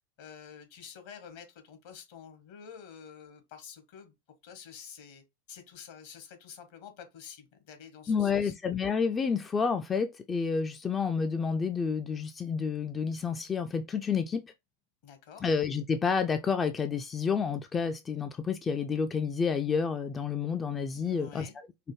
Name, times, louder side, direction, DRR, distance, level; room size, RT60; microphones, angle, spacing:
voice 1, 0.0-4.1 4.4-8.6 15.0-15.5 21.0-21.5, left 7 dB, 60° left, 1.1 m, -49 dB
voice 2, 8.1-14.4 15.4-21.5, left 6 dB, 20° left, 0.3 m, -29 dB
4.7 x 2.1 x 3.1 m
hypercardioid pair, 95°, 0 cm